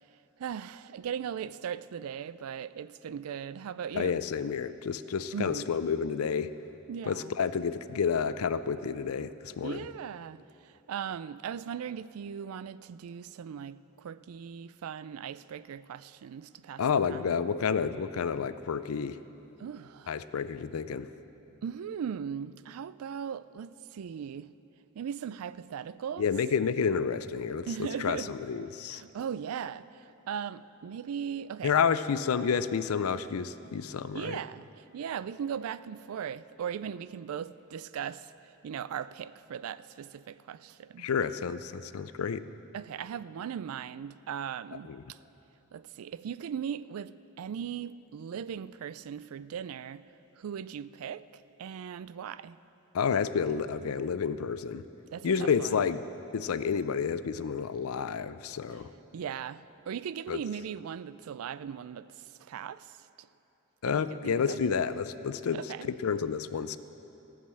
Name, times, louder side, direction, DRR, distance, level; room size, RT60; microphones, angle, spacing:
voice 1, 0.4-4.2 5.3-5.7 6.9-7.3 9.6-16.8 17.1-17.4 19.6-20.1 21.6-24.5 24.9-26.2 27.7-28.3 28.9-31.7 34.1-41.1 42.7-45.2 45.7-50.1 50.4-52.6 55.1-55.8 59.1-63.3 63.9-64.8 65.5-65.9, right 8 dB, 85° right, 0.3 m, -38 dB
voice 2, 3.9-6.5 7.0-9.8 16.8-19.2 20.1-21.1 26.2-29.0 31.6-34.4 41.0-42.4 44.9-45.0 52.9-54.9 55.2-56.0 56.3-58.9 60.3-60.4 63.8-66.8, left 6 dB, 85° left, 0.5 m, -30 dB
16.5 x 6.4 x 7.6 m
head